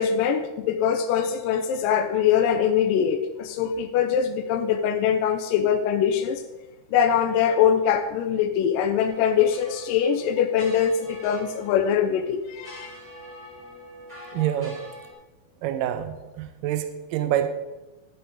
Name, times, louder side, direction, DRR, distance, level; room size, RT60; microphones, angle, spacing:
voice 1, 0.0-6.4 6.9-12.9, left 8 dB, 85° left, 6 dB, 2.2 m, -23 dB
sound 1, 9.1-15.1, equal, 15° right, 2.1 m, -44 dB
voice 2, 14.3-14.8 15.6-17.5, right 11 dB, 85° right, 9 dB, 2.3 m, -26 dB
12.5 x 8.5 x 3.7 m, 1.1 s
omnidirectional pair, 3.9 m